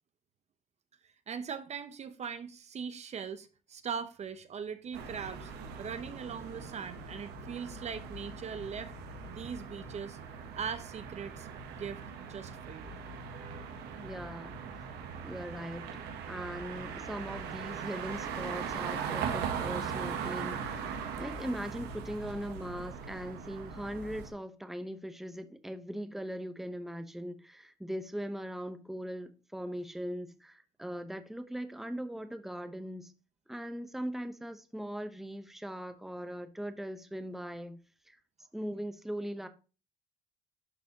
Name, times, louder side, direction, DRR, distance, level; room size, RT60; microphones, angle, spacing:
voice 1, 1.3-5.5 5.8-8.9 9.3-10.2 10.6-11.5 11.8-13.0 13.3-13.8, right 6 dB, 40° right, 0.8 m, -40 dB
sound 1, 4.9-24.3, right 6 dB, 85° right, 1.5 m, -40 dB
voice 2, 14.0-14.5 15.2-20.8 21.2-33.1 33.5-37.8 38.1-38.2 38.5-39.5, equal, ahead, 0.9 m, -40 dB
11.5 x 4.1 x 2.9 m
cardioid pair, 110°, 17 cm